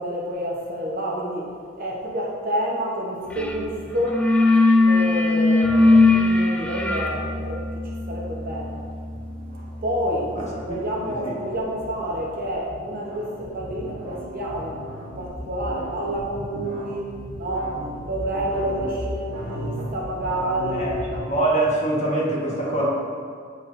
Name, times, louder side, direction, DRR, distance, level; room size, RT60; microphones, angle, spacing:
voice 1, 0.0-1.5 1.8-4.2 4.8-8.8 9.8-20.9, equal, 45° right, -3 dB, 0.9 m, -29 dB
sound 1, 3.4-3.6 3.9-10.5, left 2 dB, 5° left, 0.3 m, -20 dB
sound 2, 7.5-21.2, equal, 70° right, 1.4 m, -36 dB
voice 2, 10.3-10.8 11.1-11.3 20.7-21.0 21.3-22.9, right 2 dB, 35° left, -5 dB, 1.3 m, -24 dB
8.5 x 4.6 x 2.6 m, 2.1 s
head